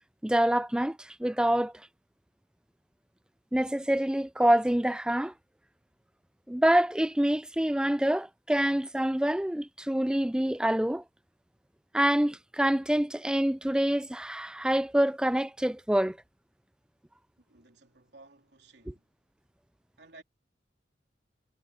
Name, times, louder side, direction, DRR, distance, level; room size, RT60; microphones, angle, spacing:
voice 1, 0.2-1.7 3.5-5.3 6.5-11.0 11.9-16.2, right 1 dB, 5° right, 0.3 m, -26 dB
voice 2, 17.4-19.1 20.0-20.2, right 2 dB, 75° right, 3.4 m, -56 dB
head